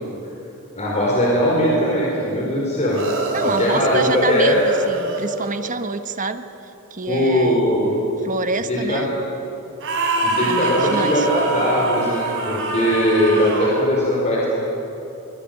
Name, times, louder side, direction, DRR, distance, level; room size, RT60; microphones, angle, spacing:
voice 1, 0.7-3.0 3.4-4.6 7.1-7.9 8.7-9.1 10.2-14.5, equal, 30° left, -4 dB, 4.9 m, -20 dB
sound 1, 2.9-5.6 9.8-13.9, right 2 dB, 60° right, 5.0 m, -25 dB
voice 2, 3.3-6.4 6.9-7.6 8.2-9.1 10.4-11.3, right 3 dB, 35° right, 9 dB, 1.2 m, -26 dB
23.0 x 22.0 x 9.3 m, 2.9 s
head